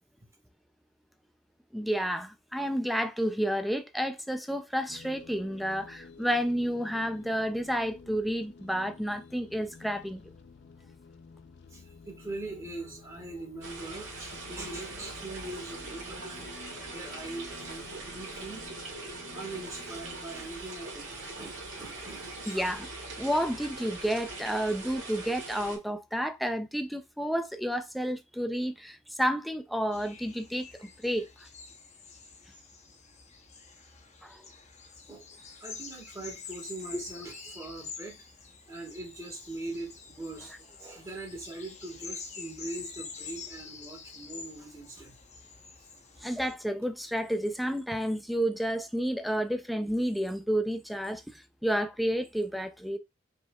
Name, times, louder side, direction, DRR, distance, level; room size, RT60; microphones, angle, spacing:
voice 1, 1.7-10.2 22.5-22.9 23.2-31.5 34.2-34.5 36.9-37.0 46.2-53.0, equal, ahead, 0.4 m, -31 dB
sound 1, 4.9-20.5, left 4 dB, 60° left, 0.4 m, -52 dB
voice 2, 11.7-18.6 19.2-22.7 35.1-38.2 38.7-45.1, right 2 dB, 15° right, 1.5 m, -42 dB
sound 2, 13.6-25.8, right 2 dB, 75° right, 1.6 m, -42 dB
sound 3, 29.9-46.5, left 5 dB, 35° left, 0.8 m, -47 dB
5.2 x 3.6 x 2.3 m
head